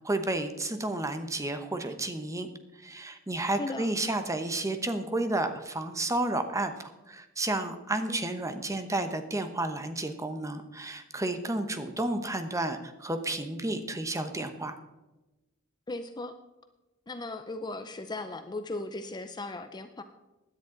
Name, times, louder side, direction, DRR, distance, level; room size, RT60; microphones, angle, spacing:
voice 1, 0.0-2.5 2.8-14.8, right 2 dB, 15° right, 8 dB, 1.0 m, -31 dB
voice 2, 3.6-3.9 8.1-8.2 15.9-16.3 17.1-20.0, left 2 dB, 20° left, 9 dB, 0.5 m, -37 dB
16.5 x 10.5 x 3.9 m, 1.1 s
head